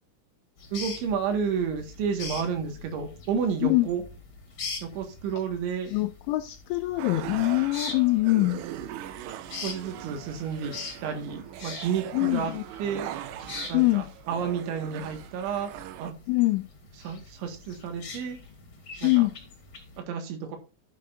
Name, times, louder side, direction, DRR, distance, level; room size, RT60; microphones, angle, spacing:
sound 1, 0.6-20.0, left 4 dB, 35° left, 2.4 m, -43 dB
voice 1, 0.7-4.0 4.8-5.9 9.6-10.7 11.0-12.5 12.8-13.1 13.7-15.7 16.0-16.2 17.0-18.4 19.0-19.2 20.1-20.6, right 6 dB, 70° right, 3.9 m, -31 dB
voice 2, 5.9-8.6 12.1-12.6 13.7-14.1 16.3-16.6 19.0-19.4, left 20 dB, 85° left, 2.7 m, -24 dB
sound 2, 7.0-16.1, right 12 dB, 85° right, 3.3 m, -40 dB
11.5 x 6.8 x 2.6 m
omnidirectional pair, 5.9 m